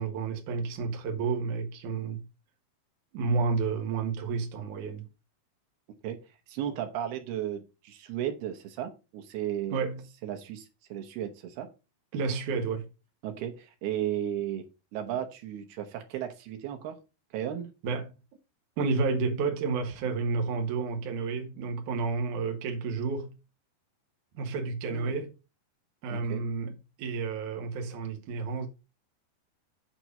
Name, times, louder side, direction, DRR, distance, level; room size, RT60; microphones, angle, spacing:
voice 1, 0.0-2.2 3.1-5.1 9.7-10.0 12.1-12.9 17.8-18.1 18.8-23.3 24.3-25.3 26.0-26.7 27.0-28.7, right 4 dB, 60° right, 2.5 m, -30 dB
voice 2, 6.0-9.9 10.2-11.7 13.2-14.6 14.9-17.0 17.3-17.7 24.9-25.1 26.1-26.4, right 10 dB, 75° right, 3.1 m, -35 dB
8.6 x 4.7 x 5.2 m
omnidirectional pair, 4.6 m